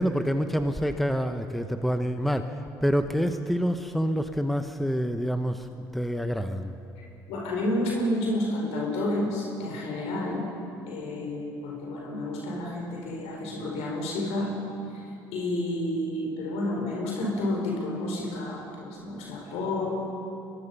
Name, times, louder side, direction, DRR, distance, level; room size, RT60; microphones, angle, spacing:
voice 1, 0.0-5.7 5.9-6.7, equal, ahead, 8 dB, 1.1 m, -27 dB
voice 2, 7.3-10.5 10.8-14.6 14.9-19.9, left 1 dB, 70° left, -1 dB, 5.0 m, -30 dB
23.5 x 21.0 x 5.5 m, 2.7 s
hypercardioid pair, 65°, 11 cm